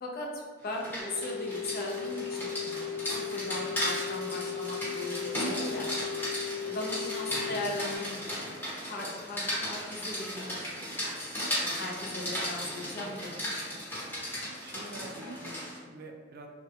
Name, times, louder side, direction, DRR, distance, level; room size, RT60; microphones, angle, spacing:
voice 1, 0.0-6.1 6.6-8.5 8.8-13.8, left 1 dB, 50° left, -1 dB, 0.5 m, -39 dB
Rain, 0.6-15.8, equal, 10° left, 0.9 m, -36 dB
sound 1, 1.0-7.9, left 7 dB, 85° left, 0.9 m, -36 dB
voice 2, 7.3-7.8 12.6-13.0 14.6-16.5, right 2 dB, 50° right, 2 dB, 0.4 m, -47 dB
3.4 x 2.2 x 2.7 m, 1.5 s
head